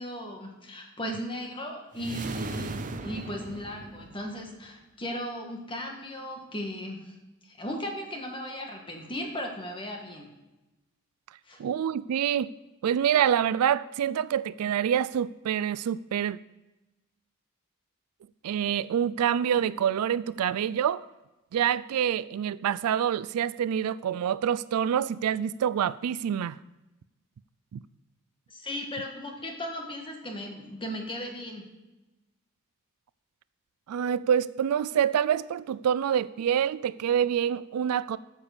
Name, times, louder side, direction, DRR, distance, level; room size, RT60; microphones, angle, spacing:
voice 1, 0.0-7.1 7.4-10.3 11.5-11.6 28.5-31.6, left 1 dB, 25° left, 1.5 m, -37 dB
sound 1, 1.9-4.5, right 2 dB, 35° right, 0.7 m, -37 dB
voice 2, 11.6-12.5 12.8-16.4 18.4-21.0 21.5-26.6 27.7-27.8 33.9-38.2, right 9 dB, 85° right, 0.3 m, -26 dB
9.0 x 6.8 x 7.1 m
head